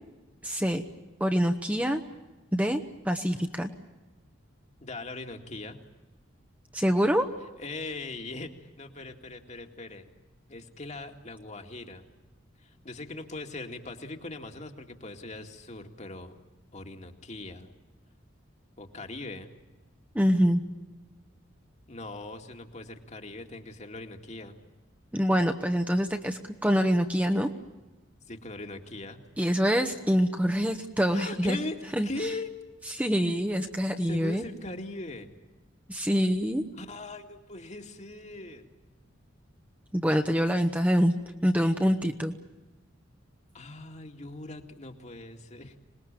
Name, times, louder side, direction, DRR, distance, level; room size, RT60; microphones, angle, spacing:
voice 1, 0.4-0.8 1.2-2.0 2.5-3.7 6.7-7.3 20.1-20.6 25.1-27.5 29.4-31.6 32.0-32.1 32.9-34.4 35.9-36.6 39.9-41.1 41.4-42.3, equal, 10° right, 5 dB, 1.2 m, -25 dB
voice 2, 4.8-5.8 7.6-8.5 8.8-10.1 10.5-12.1 12.6-16.4 16.7-17.7 18.8-19.5 21.9-24.6 28.3-29.2 31.1-32.5 34.0-35.3 36.7-38.6 43.5-45.8, left 2 dB, 35° left, 4 dB, 2.2 m, -40 dB
26.0 x 20.0 x 9.0 m, 1.1 s
head